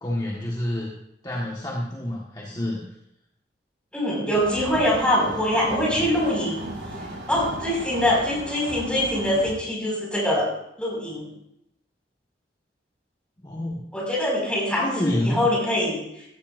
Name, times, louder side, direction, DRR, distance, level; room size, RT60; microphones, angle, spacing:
voice 1, 0.0-0.9 1.2-2.8 13.4-13.8 14.8-15.4, left 1 dB, 25° left, -4 dB, 1.6 m, -28 dB
voice 2, 3.9-6.7 7.3-10.5 10.8-11.3 13.9-16.0, left 1 dB, 5° left, -4 dB, 5.6 m, -23 dB
sound 1, 4.3-9.5, right 1 dB, 85° right, 5.4 m, -36 dB
15.5 x 14.5 x 2.6 m, 0.79 s
head